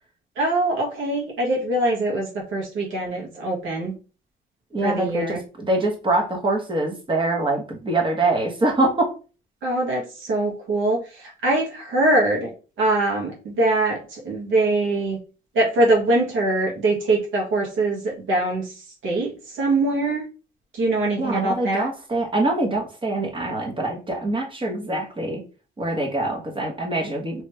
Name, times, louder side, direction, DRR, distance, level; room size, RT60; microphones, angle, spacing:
voice 1, 0.3-3.9 4.8-5.4 9.6-12.5 12.8-15.2 15.5-20.2 20.7-21.9, right 2 dB, 80° right, -1 dB, 1.6 m, -23 dB
voice 2, 4.7-9.1 21.2-25.4 25.8-27.4, right 2 dB, 25° right, 2 dB, 1.2 m, -24 dB
3.2 x 3.1 x 3.2 m, 0.35 s
cardioid pair, 90°, 20 cm